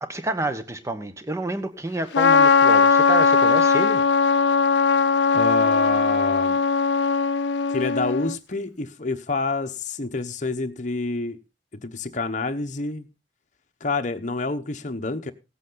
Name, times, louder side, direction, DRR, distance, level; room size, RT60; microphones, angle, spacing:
voice 1, 0.0-4.0, right 1 dB, 15° right, 1.1 m, -29 dB
Trumpet, 2.1-8.3, left 5 dB, 80° left, 0.5 m, -19 dB
voice 2, 5.3-6.6 7.7-11.4 11.7-13.1 13.8-15.3, left 3 dB, 45° left, 1.0 m, -28 dB
17.0 x 8.3 x 3.9 m
head